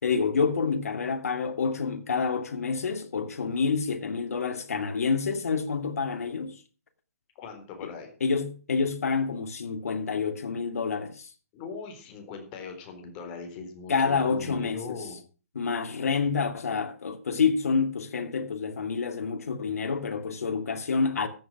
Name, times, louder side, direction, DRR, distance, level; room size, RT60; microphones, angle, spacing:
voice 1, 0.0-6.6 7.8-7.9 8.2-11.3 13.9-15.0 15.5-21.3, left 5 dB, 75° left, 2.4 m, -28 dB
voice 2, 7.4-8.1 11.5-15.2, left 5 dB, 25° left, 3.9 m, -40 dB
14.0 x 8.0 x 6.0 m
hypercardioid pair, 155°, 8 cm